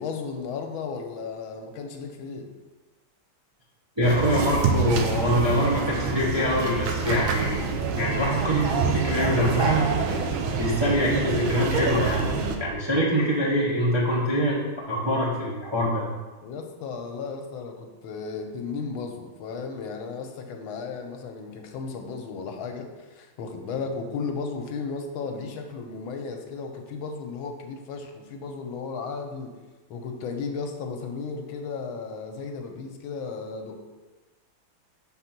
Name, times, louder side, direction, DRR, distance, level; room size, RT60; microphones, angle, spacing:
voice 1, 0.0-2.5 16.4-29.5 29.9-33.8, left 5 dB, 85° left, 4 dB, 1.5 m, -34 dB
voice 2, 4.0-7.6 7.9-9.9 10.5-12.3 12.6-14.6 14.9-16.0, equal, 20° right, -6 dB, 0.7 m, -24 dB
sound 1, 4.0-12.6, right 5 dB, 90° right, 1.5 m, -26 dB
5.1 x 4.0 x 5.8 m, 1.2 s
omnidirectional pair, 2.2 m